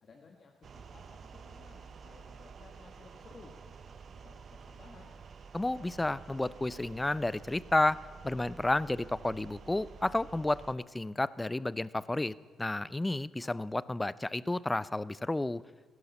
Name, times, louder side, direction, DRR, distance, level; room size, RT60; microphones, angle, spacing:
voice 1, 0.0-3.6 3.8-5.1, left 4 dB, 50° left, 1 dB, 1.6 m, -57 dB
sound 1, 0.6-10.8, right 5 dB, 50° right, 0.9 m, -50 dB
voice 2, 5.5-15.6, left 2 dB, 15° left, 19 dB, 0.4 m, -31 dB
17.0 x 11.0 x 7.0 m, 1.5 s
cardioid pair, 90°, 0 cm